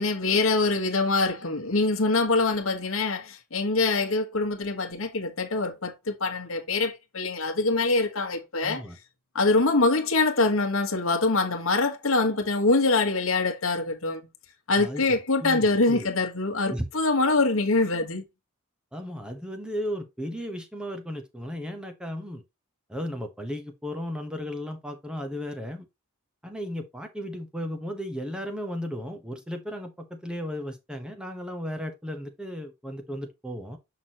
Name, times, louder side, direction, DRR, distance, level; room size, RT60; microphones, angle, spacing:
voice 1, 0.0-8.8 9.3-14.2 14.7-18.2, left 3 dB, 65° left, 1.3 m, -24 dB
voice 2, 8.6-9.0 14.8-16.1 16.7-16.9 18.9-22.4 22.9-25.9 26.4-33.8, equal, 5° right, 0.9 m, -35 dB
6.0 x 6.0 x 2.9 m
head